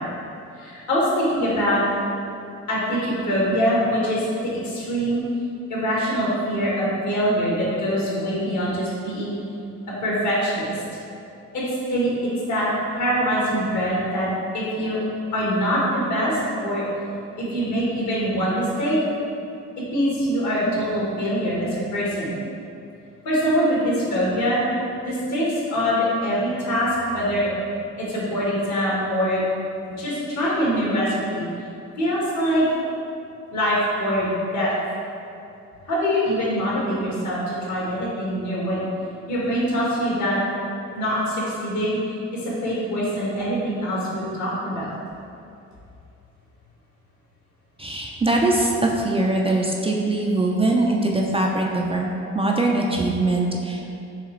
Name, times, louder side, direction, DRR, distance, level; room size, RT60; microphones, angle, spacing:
voice 1, 0.6-1.8 2.7-5.2 5.7-9.4 10.0-10.8 11.5-12.7 12.9-15.0 15.3-16.8 17.4-19.0 19.9-22.3 23.2-24.6 25.0-27.5 28.0-29.4 30.0-31.5 32.0-32.6 33.5-34.7 35.8-38.9 39.3-40.4 40.9-41.9 42.3-45.0, equal, 65° left, -6 dB, 1.4 m, -23 dB
voice 2, 47.8-52.1 52.3-53.9, right 2 dB, 20° right, -1 dB, 0.3 m, -22 dB
4.9 x 2.9 x 3.1 m, 2.6 s
cardioid pair, 90°, 30 cm